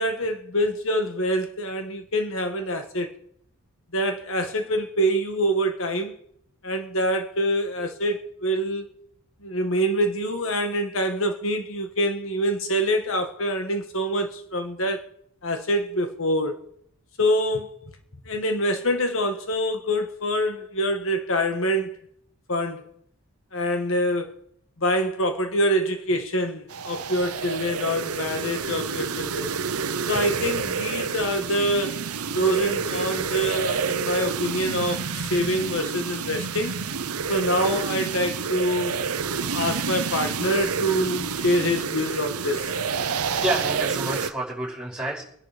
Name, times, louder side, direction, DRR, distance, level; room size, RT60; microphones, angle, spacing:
voice 1, 0.0-3.1 3.9-6.1 6.6-8.9 9.4-15.1 15.4-16.6 17.2-17.7 18.2-22.0 22.5-22.9 23.5-24.3 24.8-29.5 30.1-32.0 32.3-36.8 37.3-39.0 39.5-42.8, equal, 65° left, 1.7 m, -25 dB
sound 1, 26.7-44.3, right 5 dB, 90° right, 0.9 m, -29 dB
voice 2, 43.1-45.2, right 1 dB, 5° right, 5.8 m, -29 dB
23.5 x 11.0 x 5.2 m
head